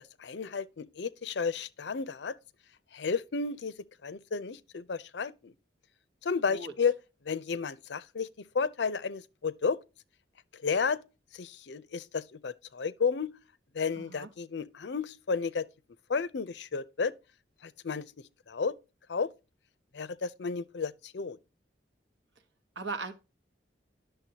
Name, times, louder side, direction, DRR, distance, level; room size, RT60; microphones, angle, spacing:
voice 1, 0.0-2.3 2.9-3.7 4.0-5.5 6.2-7.0 7.2-8.3 8.5-9.8 10.6-11.0 11.3-13.3 13.7-15.7 16.1-17.1 17.6-18.1 18.5-18.7 19.1-19.3 19.9-21.4, left 5 dB, 70° left, 0.5 m, -32 dB
voice 2, 14.0-14.3 22.8-23.1, right 3 dB, 80° right, 1.2 m, -38 dB
10.5 x 6.7 x 2.8 m
head